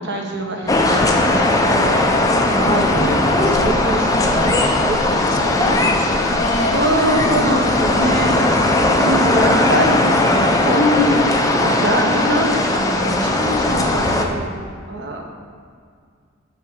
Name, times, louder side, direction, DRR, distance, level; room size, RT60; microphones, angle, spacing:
voice 1, 0.0-2.2 2.5-6.2 6.7-10.9 11.6-14.6 14.9-15.2, right 1 dB, 60° right, 1 dB, 1.1 m, -24 dB
sound 1, 0.7-14.3, left 2 dB, 15° left, 0.6 m, -18 dB
voice 2, 5.4-7.5 8.0-8.1 10.7-11.3, left 2 dB, 65° left, 1 dB, 1.0 m, -24 dB
7.0 x 4.6 x 6.4 m, 2.1 s
head